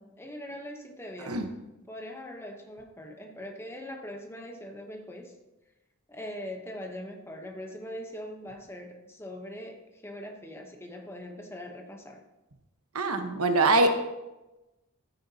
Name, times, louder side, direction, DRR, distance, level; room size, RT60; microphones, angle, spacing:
voice 1, 0.2-1.6 1.9-5.3 6.1-12.2, left 1 dB, 10° left, 3 dB, 0.9 m, -41 dB
voice 2, 12.9-13.9, right 2 dB, 80° right, 6 dB, 1.1 m, -23 dB
14.0 x 9.5 x 2.8 m, 1.0 s
head